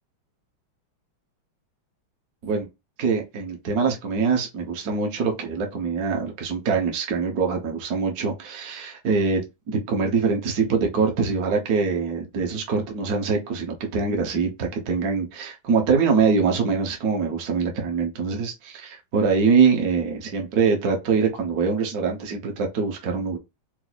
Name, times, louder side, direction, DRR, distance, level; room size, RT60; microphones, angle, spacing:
voice 1, 3.0-9.4 9.7-23.4, right 5 dB, 55° right, 1.4 m, -23 dB
4.6 x 2.0 x 4.0 m
omnidirectional pair, 2.2 m